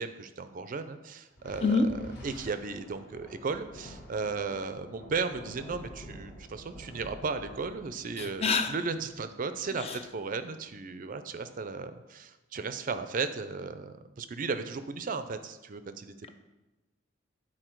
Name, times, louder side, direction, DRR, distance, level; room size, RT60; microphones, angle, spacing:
voice 1, 0.0-16.1, right 4 dB, 40° right, 10 dB, 0.4 m, -35 dB
Thunder, 1.4-10.1, equal, 50° left, 1.7 m, -49 dB
voice 2, 8.2-8.7 9.8-9.9, left 4 dB, 30° left, 7 dB, 0.5 m, -26 dB
9.9 x 4.2 x 4.5 m, 1.1 s
head